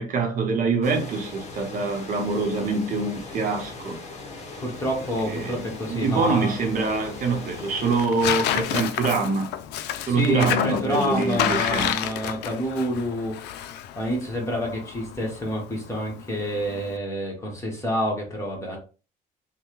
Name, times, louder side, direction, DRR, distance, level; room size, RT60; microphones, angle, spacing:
voice 1, 0.0-4.0 5.2-9.5 10.1-11.9, right 4 dB, 55° right, 0.8 m, -25 dB
sound 1, 0.8-8.1, left 3 dB, 40° left, 0.9 m, -39 dB
voice 2, 4.6-6.5 10.1-13.6 14.0-18.8, equal, 15° left, 1.3 m, -28 dB
Tearing, 4.7-17.0, left 11 dB, 85° left, 0.4 m, -31 dB
3.3 x 2.2 x 3.0 m
cardioid pair, 110°, 17 cm